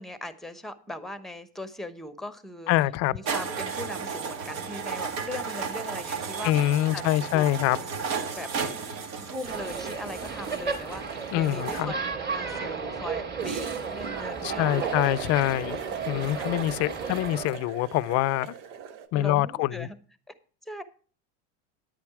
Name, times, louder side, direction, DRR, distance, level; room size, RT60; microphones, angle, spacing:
voice 1, 0.0-2.7 3.1-8.5 9.3-15.1 16.1-16.6 17.0-17.1 19.1-20.0 20.7-20.8, left 1 dB, ahead, 0.9 m, -40 dB
voice 2, 2.7-3.1 6.4-7.8 11.3-11.9 14.4-15.8 16.1-18.5 19.1-19.9, left 15 dB, 45° left, 0.5 m, -25 dB
sound 1, 3.3-11.8, right 5 dB, 65° right, 2.2 m, -34 dB
sound 2, 6.2-6.3 6.5-7.8 8.2-8.3 8.5-11.4 13.4-19.1, right 7 dB, 90° right, 1.3 m, -38 dB
sound 3, 9.4-17.5, right 5 dB, 30° right, 2.7 m, -34 dB
10.5 x 8.5 x 4.8 m
supercardioid pair, 125°, 35 cm